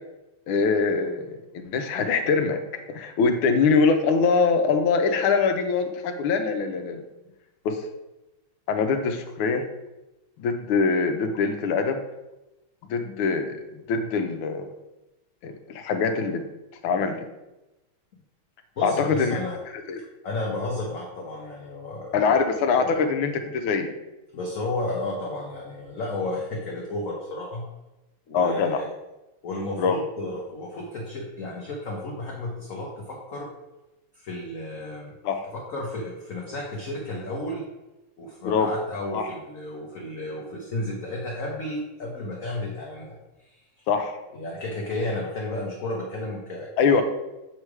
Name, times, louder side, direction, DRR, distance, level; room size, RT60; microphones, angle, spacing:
voice 1, 0.5-2.6 2.9-7.0 7.6-7.8 8.7-9.7 10.4-12.0 12.9-13.5 13.9-14.7 15.4-16.4 16.8-17.2 18.8-19.4 19.9-20.0 22.1-23.9 28.3-28.8 29.8-30.0 35.2-35.4 38.4-38.7 39.1-39.3 43.9-44.2 46.8-47.0, left 5 dB, 85° left, 5 dB, 1.5 m, -23 dB
voice 2, 18.8-19.6 20.2-22.4 22.8-22.9 24.3-27.7 28.3-28.9 29.4-33.5 34.1-35.1 35.5-37.7 38.2-43.2 43.4-43.9 44.3-47.0, left 2 dB, 55° left, -2 dB, 1.0 m, -33 dB
7.4 x 3.2 x 4.7 m, 1.0 s
omnidirectional pair, 2.3 m